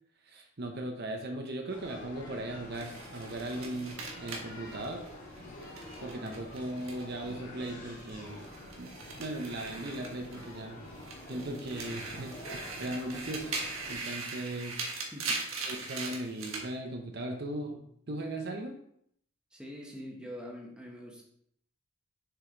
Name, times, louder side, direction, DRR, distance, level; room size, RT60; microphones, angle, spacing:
voice 1, 0.2-5.0 6.0-8.5 8.8-8.9 9.2-10.8 11.3-13.6 13.9-14.8 15.7-18.7, right 1 dB, 50° right, 3 dB, 0.8 m, -38 dB
sound 1, 1.7-14.0, left 1 dB, 40° left, 2.1 m, -47 dB
sound 2, 2.7-7.3 7.6-10.6 10.9-16.7, right 3 dB, 75° right, 1.4 m, -40 dB
voice 2, 15.1-15.5 19.5-21.2, equal, 5° right, -2 dB, 1.2 m, -44 dB
6.6 x 4.8 x 3.8 m, 0.69 s
head